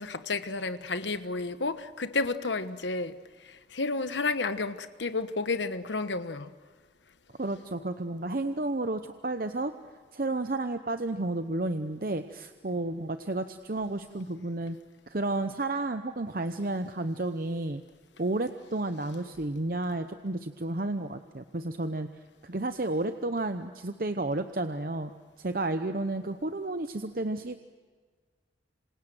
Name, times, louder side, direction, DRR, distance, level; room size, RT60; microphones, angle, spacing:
voice 1, 0.0-6.5, left 3 dB, 85° left, 1.3 m, -31 dB
voice 2, 7.4-9.7 10.1-14.8 15.1-17.8 18.2-22.1 22.4-25.1 25.4-27.6, right 2 dB, 50° right, 0.8 m, -31 dB
27.0 x 26.5 x 7.8 m
head